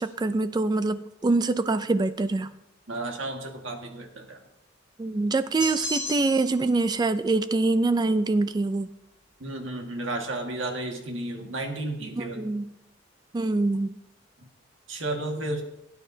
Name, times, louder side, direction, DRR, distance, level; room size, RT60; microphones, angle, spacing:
voice 1, 0.0-2.6 5.0-8.9 12.2-12.7 13.3-14.0, right 3 dB, 20° right, 12 dB, 0.3 m, -25 dB
voice 2, 2.9-4.4 9.4-12.5 14.4-14.5 14.9-15.6, right 2 dB, 85° right, 2 dB, 1.7 m, -33 dB
sound 1, 5.6-6.6, left 1 dB, 5° right, 2.4 m, -33 dB
17.0 x 9.3 x 2.7 m, 0.87 s
head